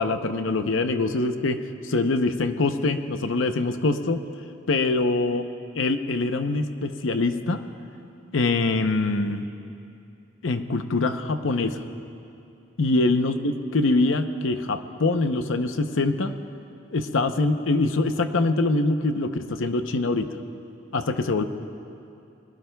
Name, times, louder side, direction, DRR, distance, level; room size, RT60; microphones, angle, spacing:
voice 1, 0.0-1.6 1.8-4.2 4.7-5.4 5.7-7.6 8.3-9.5 10.4-11.8 12.8-16.4 16.9-20.3 20.9-21.4, left 3 dB, 75° left, 8 dB, 0.7 m, -24 dB
30.0 x 20.5 x 2.3 m, 2.6 s
head